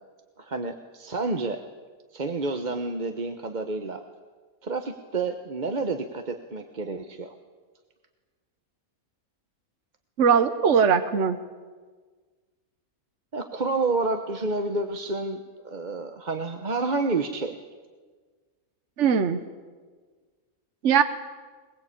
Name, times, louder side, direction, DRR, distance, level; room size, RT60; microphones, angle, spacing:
voice 1, 0.4-1.6 2.1-4.0 4.6-7.4 13.3-17.6, right 3 dB, 35° right, 6 dB, 1.1 m, -29 dB
voice 2, 10.2-11.4 19.0-19.4 20.8-21.0, right 7 dB, 55° right, 9 dB, 1.3 m, -20 dB
21.5 x 21.5 x 8.6 m, 1.4 s
omnidirectional pair, 1.5 m